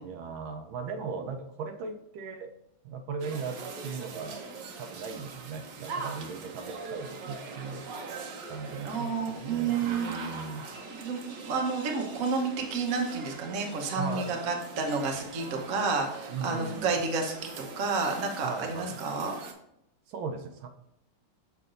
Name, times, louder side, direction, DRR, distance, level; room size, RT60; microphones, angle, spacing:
voice 1, 0.0-2.5 2.8-4.4 4.8-7.8 8.5-10.7 14.0-14.3 16.3-17.0 18.4-19.0 20.1-20.7, right 5 dB, 85° right, 4 dB, 1.5 m, -38 dB
sound 1, 3.2-19.5, right 4 dB, 65° right, 1.4 m, -42 dB
voice 2, 8.8-10.4 11.0-19.3, right 4 dB, 50° right, 2 dB, 1.3 m, -30 dB
6.8 x 5.8 x 2.5 m, 0.80 s
omnidirectional pair, 2.1 m